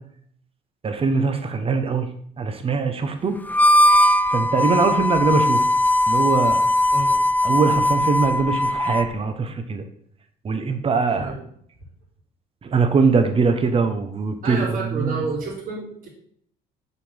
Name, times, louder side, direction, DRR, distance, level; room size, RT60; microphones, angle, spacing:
voice 1, 0.8-2.1 2.4-3.4 4.3-5.7 6.1-6.6 7.4-9.8 10.4-11.3 12.6-15.2, right 4 dB, 35° right, 7 dB, 1.2 m, -22 dB
Harmonica, 3.5-9.1, left 1 dB, 10° left, 0.4 m, -19 dB
voice 2, 14.4-16.1, right 3 dB, 55° right, -7 dB, 3.2 m, -29 dB
6.8 x 5.1 x 5.6 m, 0.64 s
cardioid pair, 110°, 17 cm